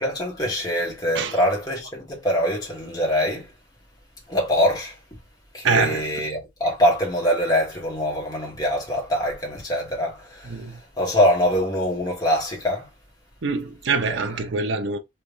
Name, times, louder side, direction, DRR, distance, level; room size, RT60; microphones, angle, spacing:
voice 1, 0.0-3.5 4.3-5.0 5.5-12.9 14.1-14.2, equal, 20° left, 1.2 m, -24 dB
voice 2, 5.6-6.0 10.5-10.8 13.4-15.0, right 4 dB, 65° right, 0.6 m, -24 dB
3.3 x 3.0 x 2.5 m
head